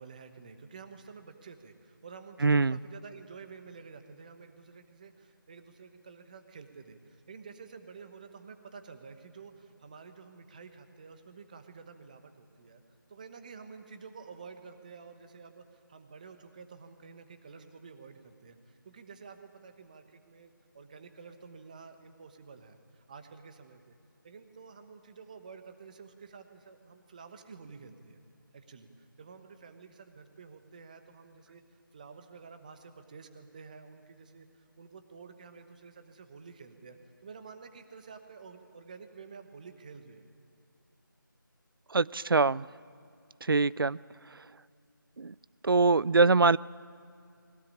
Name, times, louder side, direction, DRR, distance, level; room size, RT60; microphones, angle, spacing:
voice 1, 0.0-12.8 13.1-24.0 24.2-28.2 28.5-37.0 37.2-40.3, right 5 dB, 20° right, 1.1 m, -50 dB
voice 2, 2.4-2.7 41.9-42.7 43.5-44.0 45.2-45.3 45.6-46.6, right 3 dB, 80° right, 0.4 m, -23 dB
21.5 x 19.0 x 8.6 m
figure-of-eight pair, 165°, 11 cm